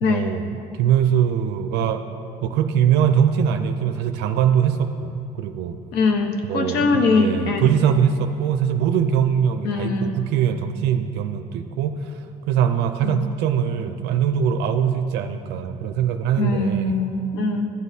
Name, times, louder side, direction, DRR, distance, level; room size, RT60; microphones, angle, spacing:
voice 1, 0.0-2.1 2.4-5.8 6.4-17.0, right 8 dB, 85° right, 8 dB, 0.4 m, -22 dB
voice 2, 5.9-7.6 9.6-10.1 13.0-13.2 16.4-17.7, left 3 dB, 85° left, 4 dB, 0.8 m, -22 dB
13.0 x 8.2 x 2.7 m, 2.7 s
cardioid pair, 110°, 17 cm